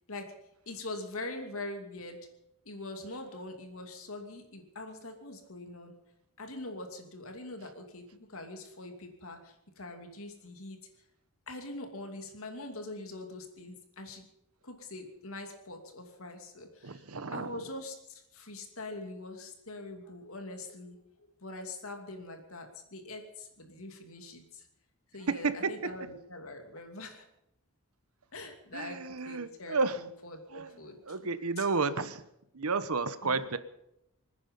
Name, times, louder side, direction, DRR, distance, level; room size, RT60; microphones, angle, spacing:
voice 1, 0.7-2.3 2.6-5.9 6.4-10.8 11.5-14.3 14.6-17.0 17.3-24.6 25.1-27.3 28.3-31.7 33.2-33.4, left 2 dB, 75° left, 4 dB, 2.8 m, -43 dB
voice 2, 16.8-17.5 25.3-25.7 28.7-30.0 30.5-30.7 31.1-32.2 32.5-33.6, right 4 dB, 80° right, 13 dB, 1.0 m, -31 dB
26.0 x 9.7 x 5.5 m, 0.81 s
head